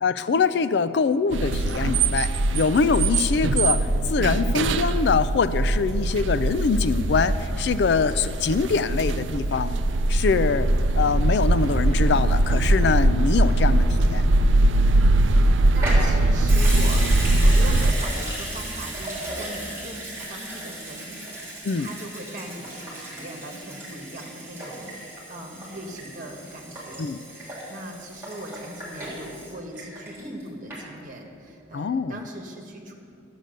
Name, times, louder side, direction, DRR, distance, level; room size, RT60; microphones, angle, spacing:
voice 1, 0.0-9.8 10.1-14.2 21.6-21.9 27.0-27.2 31.7-32.2, left 5 dB, 60° left, 14 dB, 0.3 m, -24 dB
sound 1, 1.3-17.9, right 2 dB, 75° right, 0.5 m, -21 dB
voice 2, 14.6-25.0 25.3-32.9, right 1 dB, 40° right, 1 dB, 1.5 m, -40 dB
Water tap faucet / Sink (filling or washing) / Liquid, 15.8-30.4 30.7-30.8, right 1 dB, 10° right, 3.3 m, -35 dB
12.5 x 7.7 x 6.6 m, 2.5 s
head